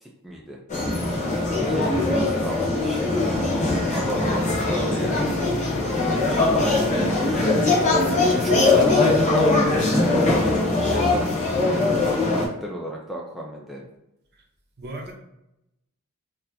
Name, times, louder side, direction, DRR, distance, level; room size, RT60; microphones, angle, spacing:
voice 1, 0.0-0.6 1.7-3.5 3.9-5.3 6.7-7.6 8.1-9.2 10.4-11.9 12.3-13.8, equal, ahead, -3 dB, 0.3 m, -34 dB
sound 1, 0.7-12.5, left 2 dB, 35° left, 0.8 m, -21 dB
voice 2, 14.8-15.1, right 1 dB, 45° right, 0 dB, 0.7 m, -36 dB
4.0 x 2.7 x 2.6 m, 0.85 s
head